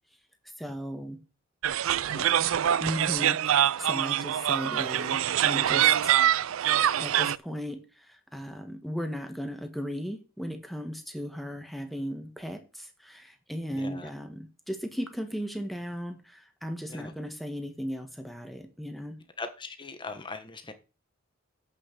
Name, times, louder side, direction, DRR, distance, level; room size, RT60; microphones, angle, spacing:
voice 1, 0.6-1.2 2.7-6.2 7.0-19.2, equal, ahead, 1.5 m, -36 dB
sound 1, 1.6-7.4, right 10 dB, 80° right, 0.4 m, -24 dB
voice 2, 2.1-2.7 13.7-14.1 16.9-17.1 19.4-20.7, left 3 dB, 25° left, 1.4 m, -40 dB
8.1 x 6.6 x 6.7 m
head